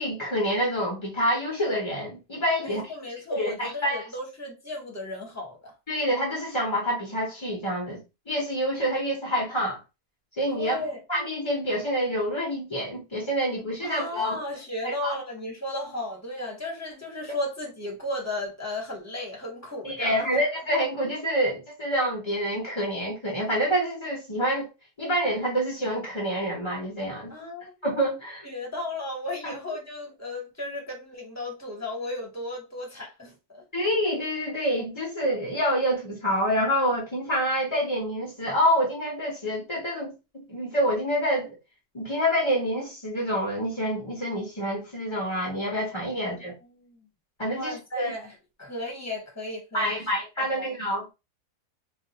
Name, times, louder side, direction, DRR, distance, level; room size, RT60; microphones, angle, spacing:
voice 1, 0.0-2.8 3.4-4.1 5.9-8.0 8.3-9.8 10.4-10.8 11.1-14.4 14.8-15.2 19.8-24.7 25.0-27.3 27.8-28.5 29.4-29.5 33.7-40.1 40.5-41.5 41.9-46.5 47.4-48.1 49.7-51.1, equal, 40° left, 0.4 m, -27 dB
voice 2, 2.6-5.7 10.5-11.0 13.8-20.3 27.3-27.7 28.4-33.6 46.1-46.4 46.8-47.1 47.5-50.0 50.4-50.8, left 1 dB, 15° left, 0.7 m, -35 dB
2.4 x 2.4 x 3.9 m
omnidirectional pair, 1.7 m